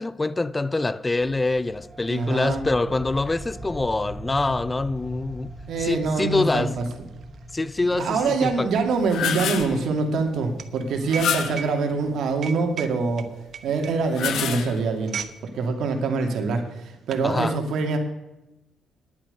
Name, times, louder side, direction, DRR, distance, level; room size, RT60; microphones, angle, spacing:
voice 1, 0.0-5.5 5.8-6.7 7.5-8.7 17.2-17.6, left 2 dB, 20° left, 0.4 m, -25 dB
sound 1, 1.2-11.4, right 1 dB, 20° right, 1.7 m, -42 dB
voice 2, 2.1-2.7 5.7-6.8 7.8-13.3 13.6-15.2 15.5-18.0, right 4 dB, 75° right, 2.4 m, -25 dB
sound 2, 5.1-5.2 5.5-15.4 15.7-16.0 16.7-17.3, right 7 dB, 55° right, 1.0 m, -39 dB
sound 3, 8.9-9.8 11.0-11.7 13.9-15.0, left 8 dB, 75° left, 1.2 m, -28 dB
11.0 x 9.1 x 6.8 m
cardioid pair, 90°, 0 cm